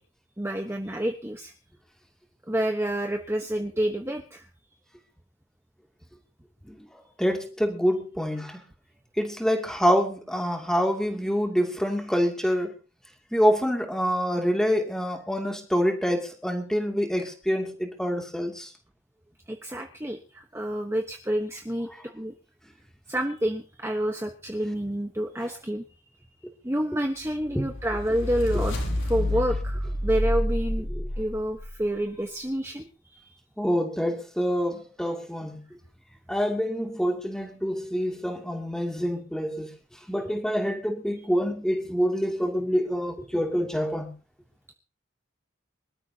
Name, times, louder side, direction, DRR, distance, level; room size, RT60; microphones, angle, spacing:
voice 1, 0.4-1.5 2.5-4.4 19.5-22.3 23.1-25.8 26.6-28.8 29.0-30.9 31.2-32.8 33.1-33.2 41.2-41.3, right 1 dB, 15° right, 1.2 m, -28 dB
voice 2, 7.2-8.6 9.2-12.7 13.3-18.7 27.5-27.7 30.9-31.1 33.6-35.6 36.3-39.7 40.1-44.1, equal, 5° left, 2.7 m, -26 dB
sound 1, 27.5-31.7, left 1 dB, 90° left, 6.8 m, -28 dB
25.0 x 13.5 x 2.9 m
head